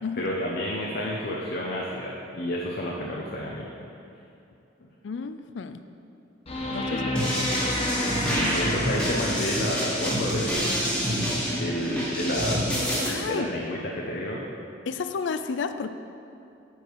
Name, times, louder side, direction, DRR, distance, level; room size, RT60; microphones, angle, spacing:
voice 1, 0.2-3.7 6.9-7.0 8.3-10.9 11.5-12.8 13.2-14.4, left 1 dB, 55° left, -3 dB, 0.8 m, -30 dB
voice 2, 5.0-5.8 6.7-7.1 13.0-13.5 14.9-15.9, left 5 dB, 70° left, 10 dB, 0.4 m, -31 dB
sound 1, 6.5-9.8 12.5-12.6, left 1 dB, 35° left, 1.1 m, -30 dB
sound 2, 7.1-13.1, equal, 5° left, 1.8 m, -27 dB
10.0 x 5.1 x 4.7 m, 2.6 s
head